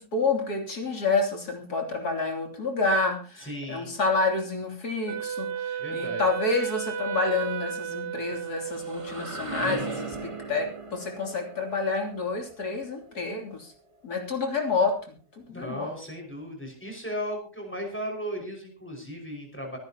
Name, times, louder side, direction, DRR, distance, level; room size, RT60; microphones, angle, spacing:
voice 1, 0.0-13.7 14.0-15.1 15.5-15.9, left 3 dB, 65° left, 3 dB, 3.6 m, -28 dB
voice 2, 3.4-3.9 5.8-6.2 15.5-19.8, equal, 5° left, 0 dB, 5.5 m, -36 dB
Wind instrument woodwind instrument, 5.1-9.4, right 7 dB, 45° right, 1.4 m, -33 dB
sound 1, 8.3-14.1, right 3 dB, 20° right, 1.4 m, -38 dB
24.5 x 11.5 x 2.9 m, 0.36 s
omnidirectional pair, 1.8 m